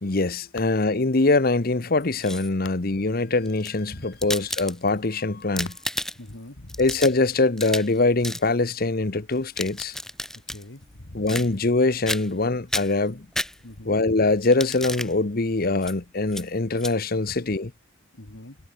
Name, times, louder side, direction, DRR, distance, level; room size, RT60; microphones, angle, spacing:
voice 1, 0.0-5.7 6.8-10.0 11.1-13.3 13.8-17.7, left 3 dB, 50° left, 1.0 m, -23 dB
sound 1, 2.0-2.7 3.4-5.1 5.4-6.3 6.7-8.0 8.2-8.5 9.3-10.6 11.3-11.8 12.1-12.4 12.7-13.9 14.4-15.1 15.8-15.9 16.3-16.4 16.8-16.9, left 1 dB, ahead, 0.4 m, -32 dB
voice 2, 6.2-6.8 10.5-11.3 13.6-14.0 18.1-18.6, left 1 dB, 75° left, 2.2 m, -42 dB
head